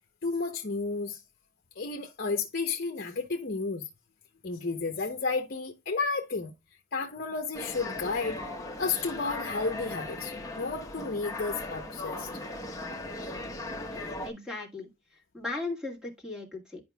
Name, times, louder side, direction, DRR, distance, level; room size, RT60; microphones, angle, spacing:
voice 1, 0.2-1.2 1.7-3.9 4.4-6.5 6.9-8.4 8.8-12.3, left 4 dB, 50° left, 0.8 m, -32 dB
sound 1, 7.5-14.3, left 2 dB, 15° left, 1.0 m, -38 dB
voice 2, 13.9-14.9 15.3-16.8, left 3 dB, 5° right, 1.9 m, -37 dB
11.0 x 5.0 x 2.3 m
head